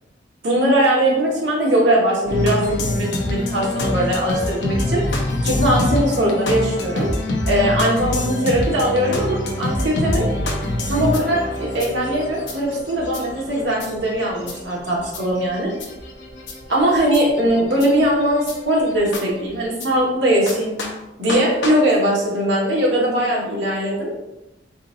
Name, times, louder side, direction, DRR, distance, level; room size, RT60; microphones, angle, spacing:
voice 1, 0.4-7.1 7.5-10.3 10.9-15.7 16.7-20.7 21.2-24.1, right 1 dB, 75° right, -4 dB, 1.4 m, -20 dB
sound 1, 2.3-19.9 20.5-20.6 20.8-20.9 21.3-21.4 21.6-21.7, left 1 dB, 75° left, 0.8 m, -26 dB
4.4 x 4.0 x 2.5 m, 0.94 s
head